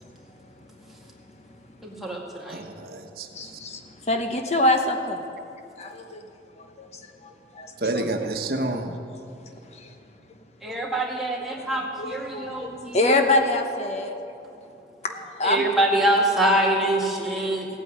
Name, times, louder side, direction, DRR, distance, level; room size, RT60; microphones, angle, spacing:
voice 1, 0.0-0.5 1.3-1.6 3.3-5.2 5.8-6.2 6.6-7.7 9.7-9.9 10.6-10.8 11.5-14.2 15.0-15.7, left 2 dB, 40° left, 5 dB, 1.0 m, -26 dB
voice 2, 1.8-2.6 10.6-13.1 15.4-17.7, right 1 dB, ahead, -3 dB, 2.0 m, -24 dB
voice 3, 2.5-3.6 7.8-9.0, right 2 dB, 55° right, 4 dB, 1.1 m, -29 dB
15.5 x 9.1 x 9.6 m, 2.8 s
head